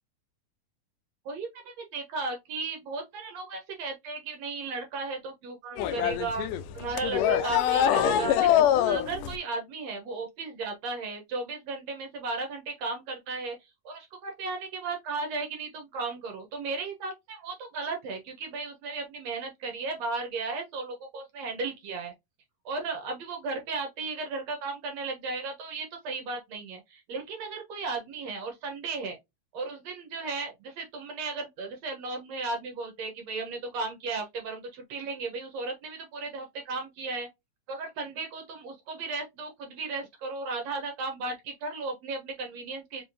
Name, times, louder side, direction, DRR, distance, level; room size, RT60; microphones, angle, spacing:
voice 1, 1.3-6.5 6.7-22.1 22.7-29.2 29.5-37.3 37.7-43.0, right 3 dB, 65° right, 1.9 m, -35 dB
sound 1, 5.8-9.4, left 10 dB, 80° left, 2.1 m, -24 dB
5.2 x 3.4 x 2.7 m
omnidirectional pair, 3.9 m